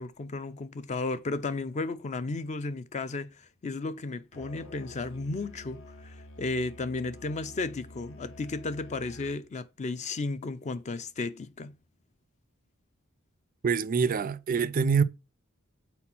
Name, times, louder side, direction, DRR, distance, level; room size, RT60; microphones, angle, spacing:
voice 1, 0.0-11.7, left 3 dB, 30° left, 0.4 m, -34 dB
Musical instrument, 4.3-9.5, left 1 dB, 65° left, 1.1 m, -48 dB
voice 2, 13.6-15.0, right 5 dB, 40° right, 0.3 m, -25 dB
4.3 x 4.2 x 5.6 m
head